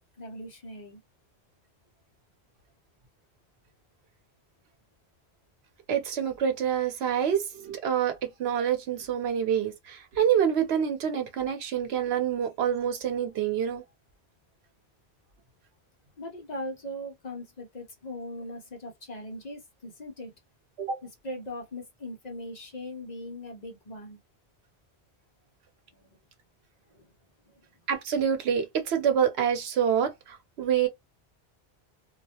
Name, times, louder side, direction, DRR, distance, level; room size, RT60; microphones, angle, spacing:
voice 1, 0.2-1.0 16.2-20.3 21.0-24.2 25.9-26.2 26.9-27.1 27.4-27.6, left 1 dB, 50° left, 0.6 m, -40 dB
voice 2, 5.9-13.8 20.8-21.0 27.9-30.9, right 8 dB, 80° right, 0.9 m, -27 dB
2.3 x 2.1 x 2.7 m
omnidirectional pair, 1.1 m